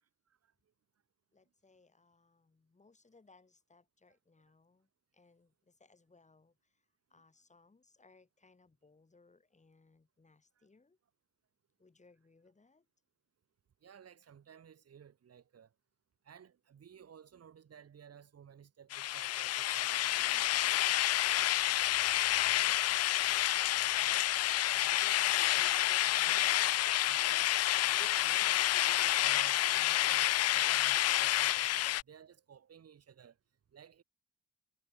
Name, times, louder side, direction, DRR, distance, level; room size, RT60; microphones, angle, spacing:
voice 1, 1.3-6.8 7.1-11.0 11.8-12.9 22.4-22.8, left 3 dB, 25° left, 7.4 m, -66 dB
voice 2, 13.8-15.7 16.2-20.8 24.0-24.3 24.7-26.6 27.0-27.5 27.8-33.4 33.7-34.0, right 8 dB, 55° right, 7.2 m, -55 dB
sound 1, 18.9-32.0, left 14 dB, 55° left, 0.5 m, -29 dB
cardioid pair, 90°, 30 cm